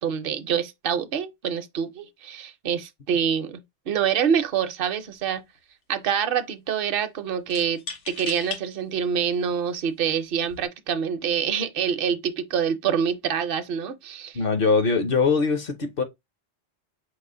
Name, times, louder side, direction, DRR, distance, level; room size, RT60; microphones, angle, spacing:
voice 1, 0.0-5.4 5.9-14.4, right 7 dB, 60° right, 0.8 m, -26 dB
sound 1, 4.4-4.6 4.9-5.6 7.5-8.6 9.3-9.4 10.3-10.7, left 6 dB, 90° left, 1.2 m, -37 dB
voice 2, 14.3-16.0, left 4 dB, 55° left, 0.9 m, -22 dB
4.8 x 2.0 x 3.7 m
omnidirectional pair, 1.2 m